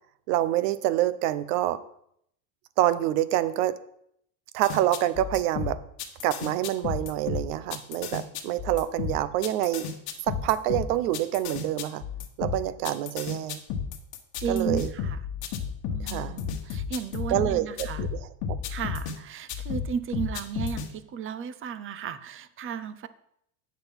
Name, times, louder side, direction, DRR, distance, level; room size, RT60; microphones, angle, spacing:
voice 1, 0.3-1.8 2.8-3.8 4.5-5.8 6.2-9.9 10.3-12.0 12.4-13.6 14.5-14.9 16.0-16.4 17.3-18.2 18.5-18.6, right 13 dB, 75° right, 15 dB, 0.8 m, -26 dB
sound 1, 4.6-19.2 19.5-20.9, left 7 dB, 50° left, 1.4 m, -33 dB
voice 2, 14.4-15.2 15.9-18.1 18.7-23.1, right 7 dB, 30° right, 14 dB, 0.6 m, -34 dB
8.1 x 6.3 x 5.6 m, 0.73 s
supercardioid pair, 125°, 46 cm